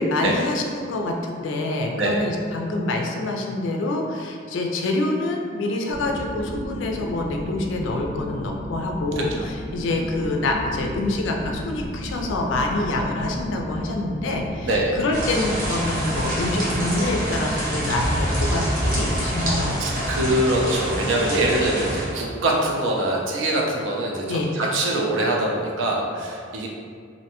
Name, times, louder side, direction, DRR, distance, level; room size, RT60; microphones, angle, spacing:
voice 1, 0.0-14.7 15.0-19.8 24.2-24.5, left 2 dB, 80° left, 2 dB, 0.3 m, -26 dB
sound 1, 5.9-20.4, equal, 5° left, 0.8 m, -34 dB
voice 2, 9.2-9.5 14.7-15.0 19.8-26.7, right 1 dB, 80° right, -1 dB, 0.5 m, -23 dB
sound 2, 15.1-22.1, equal, 50° right, 0.7 m, -26 dB
2.6 x 2.2 x 2.8 m, 2.1 s
head